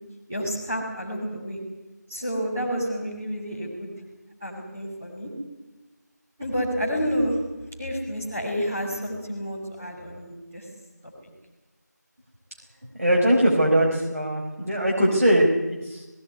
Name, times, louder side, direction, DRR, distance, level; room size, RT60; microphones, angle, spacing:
voice 1, 0.3-1.6 2.1-3.9 4.4-5.3 6.4-7.3 7.8-10.6, equal, 5° right, -10 dB, 2.9 m, -29 dB
voice 2, 13.0-16.0, right 1 dB, 55° right, -3 dB, 5.1 m, -21 dB
19.0 x 17.0 x 9.9 m, 1.1 s
figure-of-eight pair, 180°, 10 cm